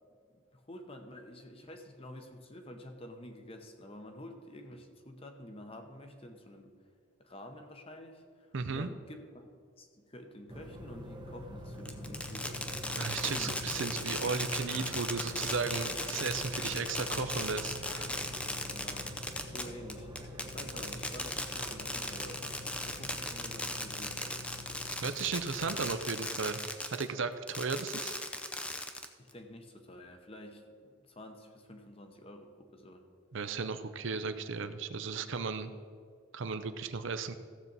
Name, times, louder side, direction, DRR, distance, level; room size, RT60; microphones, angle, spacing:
voice 1, 0.5-6.7 7.2-9.5 9.8-12.8 13.2-13.9 18.7-19.1 19.5-22.5 22.8-24.4 29.2-33.1, left 1 dB, 25° left, 5 dB, 0.9 m, -49 dB
voice 2, 8.5-8.9 13.0-17.8 25.0-26.6 26.9-28.2 33.3-35.7 36.3-37.4, right 5 dB, 65° right, 10 dB, 0.6 m, -35 dB
sound 1, 10.5-26.1, left 1 dB, 20° right, 0.8 m, -45 dB
Fireworks, 11.9-27.1 27.5-29.3, left 1 dB, 5° left, 0.4 m, -37 dB
sound 2, 14.6-17.2 17.6-19.3, left 2 dB, 80° left, 1.6 m, -52 dB
15.0 x 7.4 x 4.0 m, 2.1 s
head